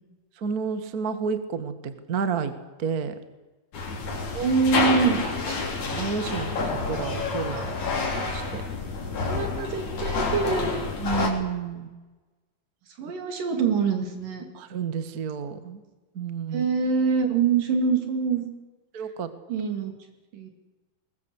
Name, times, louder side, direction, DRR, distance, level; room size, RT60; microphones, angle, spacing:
voice 1, 0.4-2.5 2.8-3.1 5.5-8.6 9.1-9.2 11.0-11.9 13.0-13.1 14.5-15.8 16.1-16.7 18.9-19.3, right 5 dB, 50° right, 10 dB, 1.1 m, -31 dB
sound 1, 3.7-11.3, left 4 dB, 55° left, 4.6 m, -28 dB
voice 2, 4.3-5.2 7.5-7.7 9.2-10.8 11.2-11.3 13.0-14.5 16.5-18.4 19.5-19.9 20.3-20.5, right 5 dB, 65° right, 5 dB, 4.4 m, -25 dB
21.5 x 20.0 x 8.2 m, 1.2 s
omnidirectional pair, 4.2 m